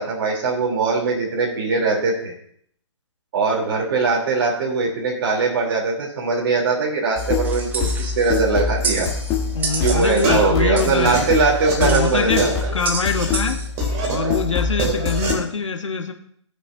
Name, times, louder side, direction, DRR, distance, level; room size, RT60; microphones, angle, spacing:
voice 1, 0.0-2.3 3.3-9.1 9.8-12.5, right 4 dB, 50° right, -2 dB, 3.3 m, -21 dB
sound 1, 7.2-15.3, left 6 dB, 20° left, 1.3 m, -25 dB
sound 2, 7.4-13.7, right 4 dB, 10° right, 0.7 m, -31 dB
sound 3, 8.9-9.0 9.6-9.9 10.2-13.3 13.8-15.4, right 4 dB, 30° right, 2.5 m, -26 dB
voice 2, 9.5-11.5 11.8-12.4 12.7-13.6 14.1-16.1, left 5 dB, 75° left, 5 dB, 1.1 m, -24 dB
18.5 x 6.4 x 2.7 m, 0.64 s
figure-of-eight pair, 140°, 16 cm